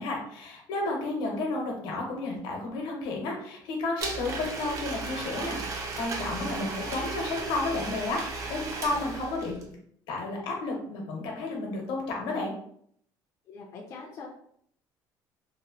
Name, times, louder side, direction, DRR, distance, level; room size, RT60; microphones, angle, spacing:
voice 1, 0.0-9.6 10.1-12.5, left 2 dB, 80° left, 0 dB, 0.9 m, -32 dB
Domestic sounds home sounds, 4.0-9.7, right 3 dB, 40° right, 0.4 m, -35 dB
voice 2, 13.5-14.3, left 4 dB, 40° left, -1 dB, 0.4 m, -43 dB
2.8 x 2.1 x 2.8 m, 0.66 s
cardioid pair, 180°, 8 cm